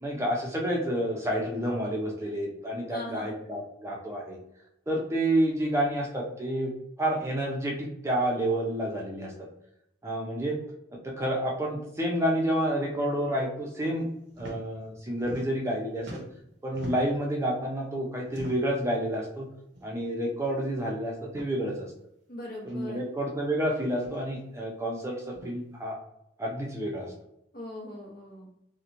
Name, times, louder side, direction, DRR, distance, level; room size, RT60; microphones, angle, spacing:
voice 1, 0.0-4.4 4.9-6.7 7.0-9.5 10.0-10.5 11.0-14.1 14.4-16.2 16.6-19.5 19.8-21.9 22.6-26.0 26.4-27.1, right 1 dB, 15° right, -1 dB, 0.5 m, -29 dB
voice 2, 2.9-3.3 22.3-23.0 27.5-28.5, left 1 dB, 50° left, -3 dB, 0.9 m, -40 dB
sound 1, 14.3-14.6 14.9-15.7 16.0-17.3 18.3-18.8 19.7-19.9 20.2-20.3 21.2-21.5 22.7-22.8 23.9-24.2 25.3-25.5, equal, 65° right, 0.6 m, -43 dB
2.8 x 2.1 x 2.5 m, 0.79 s
head